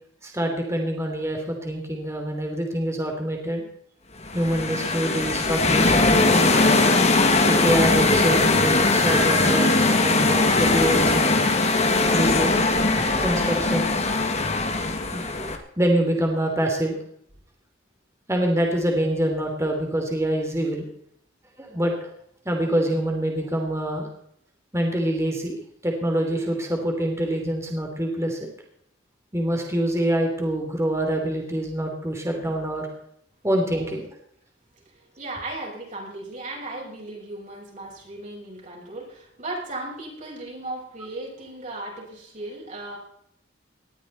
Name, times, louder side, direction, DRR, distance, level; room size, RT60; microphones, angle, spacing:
voice 1, 0.2-3.6 4.3-6.9 7.3-11.4 12.1-12.9 13.2-13.9 14.3-14.8 15.1-15.5 15.8-17.0 18.3-20.8 21.6-21.9 22.4-24.1 24.7-25.6 25.8-28.5 29.3-32.9 33.4-34.1, right 1 dB, 15° right, 2 dB, 3.1 m, -25 dB
sound 1, 4.2-15.6, left 3 dB, 35° left, 1.9 m, -20 dB
voice 2, 35.2-43.0, right 2 dB, 40° right, -3 dB, 6.7 m, -36 dB
20.0 x 13.5 x 4.2 m, 0.71 s
head